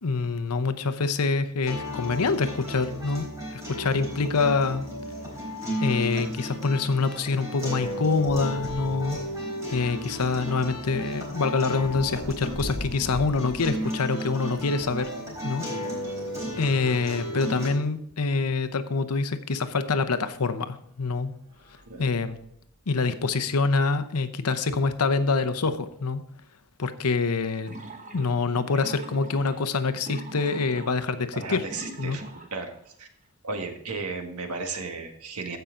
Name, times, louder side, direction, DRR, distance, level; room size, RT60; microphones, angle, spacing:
voice 1, 0.0-3.3 3.5-4.9 5.8-9.2 9.7-15.1 15.4-15.6 16.6-21.3 22.0-22.4 22.9-26.2 26.8-27.8 28.1-31.6 32.0-32.2, left 4 dB, 90° left, 11 dB, 0.8 m, -26 dB
sound 1, 1.7-17.7, equal, 15° right, 4.0 m, -34 dB
sound 2, 11.6-15.1 15.8-17.2 17.9-18.0 18.2-18.3 20.0-20.1 20.7-21.0 21.4-22.7, equal, 60° right, 2.6 m, -44 dB
sound 3, 19.6-19.9 20.3-20.4 27.6-32.9, right 2 dB, 35° right, 1.2 m, -43 dB
voice 2, 31.3-33.1 33.4-35.6, right 3 dB, 85° right, 5 dB, 1.6 m, -35 dB
15.0 x 5.8 x 3.8 m, 0.71 s
head